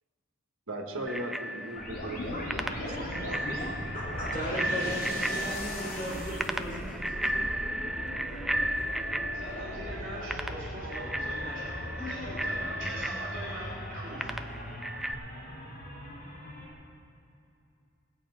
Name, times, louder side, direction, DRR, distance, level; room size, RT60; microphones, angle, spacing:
voice 1, 0.7-2.7 3.1-3.4, right 1 dB, 75° right, 1 dB, 1.7 m, -38 dB
Bicycle bell, 1.1-15.1, right 1 dB, ahead, 0.3 m, -35 dB
sound 1, 1.7-16.7, left 1 dB, 45° left, 3.7 m, -38 dB
voice 2, 3.8-7.3, equal, 25° left, -4 dB, 3.3 m, -37 dB
voice 3, 9.3-14.3, right 1 dB, 40° right, -6 dB, 3.1 m, -41 dB
19.0 x 8.6 x 5.0 m, 2.6 s
head